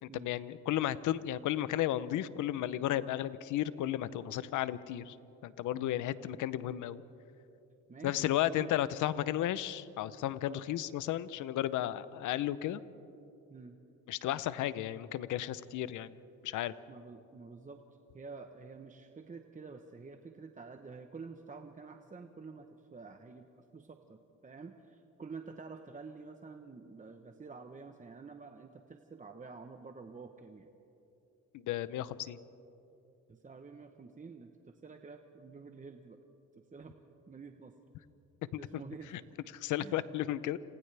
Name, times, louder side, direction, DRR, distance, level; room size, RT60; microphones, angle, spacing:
voice 1, 0.0-5.2 5.4-7.0 8.0-12.8 14.1-16.1 16.4-16.7 31.6-32.4 38.5-38.6 39.1-39.2 39.5-40.6, left 13 dB, 80° left, 16 dB, 0.7 m, -33 dB
voice 2, 7.9-8.7 10.4-10.6 13.5-13.8 16.9-17.8 18.1-30.7 33.3-36.2 36.7-36.9 37.3-37.7 38.6-39.3 39.8-40.3, right 4 dB, 25° right, 6 dB, 1.0 m, -49 dB
28.5 x 26.5 x 3.4 m, 2.9 s
cardioid pair, 90°, 30 cm